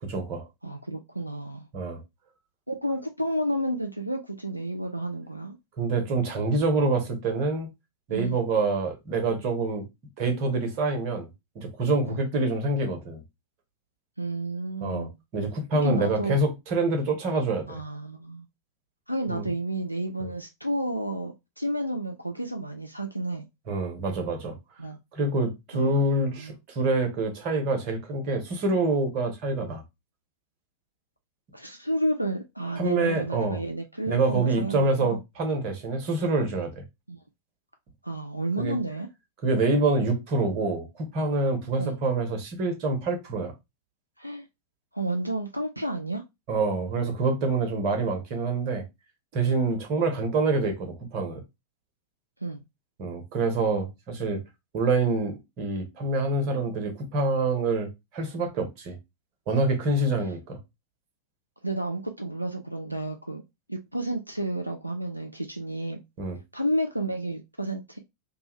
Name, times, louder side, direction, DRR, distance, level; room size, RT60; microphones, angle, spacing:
voice 1, 0.1-0.5 1.7-2.0 5.8-7.7 8.1-9.8 10.2-11.3 11.5-13.2 14.8-15.1 15.3-17.8 19.3-19.4 20.2-20.3 23.7-24.6 25.1-29.8 32.8-33.6 34.1-36.8 38.6-38.7 39.4-43.5 46.5-48.8 49.3-51.4 53.0-54.4 54.7-57.9 58.1-59.0 59.5-60.6 66.2-66.4, right 2 dB, 45° right, 1.0 m, -26 dB
voice 2, 0.6-1.7 2.7-5.6 8.1-8.4 12.1-12.3 14.2-15.2 15.8-16.4 17.7-18.5 19.1-23.5 24.8-25.0 25.7-26.6 31.5-35.2 37.1-37.2 38.0-39.1 41.8-42.0 44.2-44.5 44.9-46.2 52.4-52.6 60.0-60.1 61.6-63.4 63.7-66.0 66.5-68.0, right 1 dB, 90° right, 0.3 m, -31 dB
2.7 x 2.3 x 3.0 m
figure-of-eight pair, 90°, 0 cm